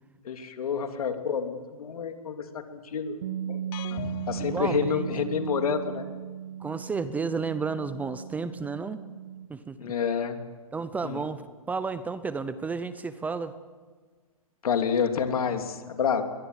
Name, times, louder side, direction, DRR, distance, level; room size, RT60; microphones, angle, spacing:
voice 1, 0.2-3.2 3.4-3.6 4.3-6.0 9.8-10.4 11.0-11.2 14.6-16.2, left 6 dB, 75° left, 6 dB, 3.0 m, -28 dB
Bass guitar, 3.2-9.5, right 9 dB, 60° right, 2.0 m, -37 dB
sound 1, 3.7-5.7, left 13 dB, 35° left, 0.8 m, -42 dB
voice 2, 4.4-5.0 6.6-9.0 9.5-9.9 10.7-11.4 11.7-13.5, right 4 dB, 10° right, 13 dB, 0.7 m, -32 dB
22.5 x 22.0 x 8.2 m, 1.5 s
hypercardioid pair, 145°, 19 cm